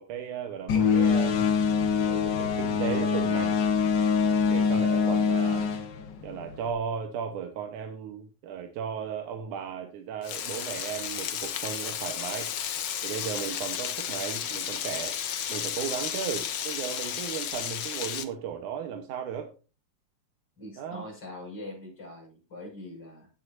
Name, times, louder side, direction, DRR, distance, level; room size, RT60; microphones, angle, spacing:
voice 1, 0.0-1.5 2.1-3.6 4.5-5.7 6.2-12.5 13.0-15.2 15.5-19.5 20.8-21.1, right 8 dB, 85° right, 2.6 m, -35 dB
sound 1, 0.7-6.7, left 6 dB, 60° left, 1.1 m, -24 dB
Frying (food), 10.2-18.2, left 9 dB, 85° left, 1.0 m, -33 dB
voice 2, 20.6-23.3, left 1 dB, 35° left, 6.4 m, -42 dB
16.5 x 8.0 x 2.7 m
omnidirectional pair, 3.4 m